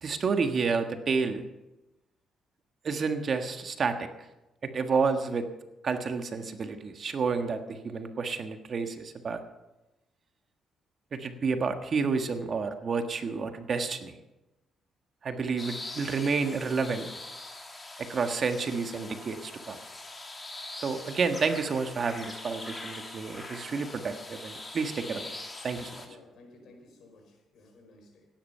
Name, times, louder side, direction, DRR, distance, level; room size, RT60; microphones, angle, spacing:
voice 1, 0.0-1.4 2.8-4.1 4.6-5.5 5.8-9.4 11.1-14.2 15.2-17.1 18.0-19.8 20.7-25.4 25.6-26.0, right 5 dB, 50° right, 6 dB, 1.5 m, -30 dB
sound 1, 15.6-26.1, left 2 dB, 20° left, 2.8 m, -43 dB
voice 2, 26.0-28.3, left 2 dB, 70° left, 3 dB, 4.8 m, -55 dB
16.5 x 10.5 x 5.7 m, 0.99 s
cardioid pair, 90°, 0 cm